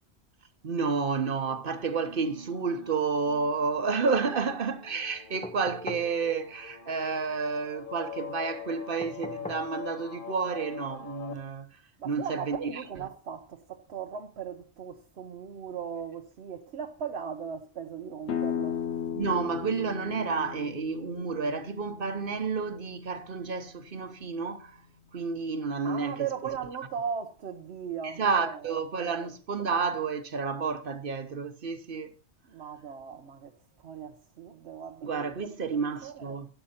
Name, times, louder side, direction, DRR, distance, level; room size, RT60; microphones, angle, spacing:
voice 1, 0.6-11.7 12.0-12.8 19.1-24.8 25.1-26.3 28.0-32.1 35.0-36.5, right 5 dB, 55° right, 1.2 m, -30 dB
sound 1, 1.0-11.3, left 6 dB, 55° left, 1.3 m, -44 dB
sound 2, 5.4-6.1 9.0-9.7 11.3-11.4, left 1 dB, 10° left, 0.6 m, -40 dB
voice 2, 12.0-18.8 25.8-29.2 32.5-36.4, right 7 dB, 75° right, 1.1 m, -38 dB
sound 3, 18.3-23.8, left 8 dB, 85° left, 1.1 m, -36 dB
13.0 x 9.1 x 4.3 m
omnidirectional pair, 1.1 m